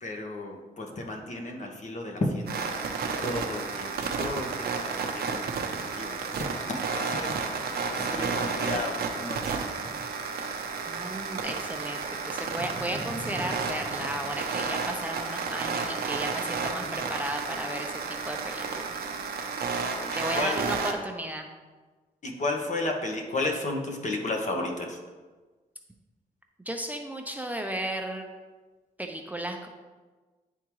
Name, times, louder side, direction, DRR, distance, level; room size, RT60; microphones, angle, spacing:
voice 1, 0.0-2.7 3.2-5.5 6.0-10.0 12.6-13.5 14.0-14.2 20.0-20.1 20.4-20.6 22.2-25.0, left 2 dB, 50° left, 1 dB, 1.2 m, -33 dB
sound 1, 2.5-20.9, right 5 dB, 75° right, 0.7 m, -32 dB
voice 2, 10.9-19.0 20.1-21.5 26.6-28.2 29.0-29.7, right 1 dB, 10° right, 3 dB, 0.6 m, -34 dB
10.5 x 3.6 x 3.1 m, 1.3 s
cardioid pair, 75°, 16 cm